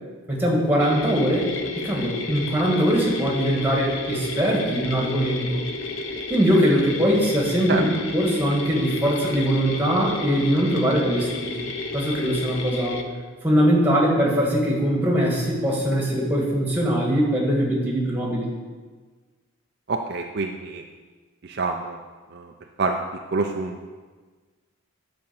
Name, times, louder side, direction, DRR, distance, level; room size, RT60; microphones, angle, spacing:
voice 1, 0.3-1.5 1.8-5.6 6.3-11.6 11.9-13.0 13.4-18.5, equal, 10° right, -2 dB, 2.0 m, -21 dB
sound 1, 0.8-13.0, left 3 dB, 60° left, 0.8 m, -32 dB
voice 2, 19.9-20.8 21.4-22.0 22.3-22.5 22.8-23.0 23.3-23.9, right 3 dB, 50° right, 3 dB, 0.5 m, -26 dB
10.5 x 5.2 x 7.0 m, 1.4 s
head